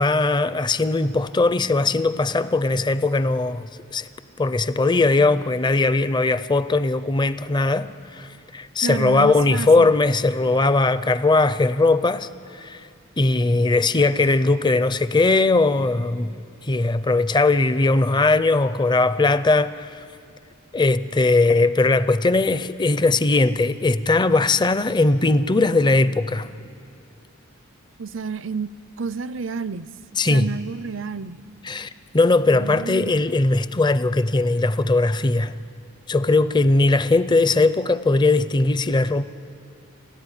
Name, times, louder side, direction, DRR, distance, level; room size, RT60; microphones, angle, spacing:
voice 1, 0.0-3.6 3.9-4.1 4.4-12.9 13.2-16.3 16.7-20.0 20.7-26.5 30.2-30.5 31.6-35.5 36.1-39.2, left 3 dB, 20° left, 0.5 m, -19 dB
voice 2, 8.8-9.9 28.0-28.7 29.0-29.9 30.3-31.4 32.6-33.2, right 5 dB, 65° right, 0.6 m, -30 dB
29.5 x 14.0 x 10.0 m
head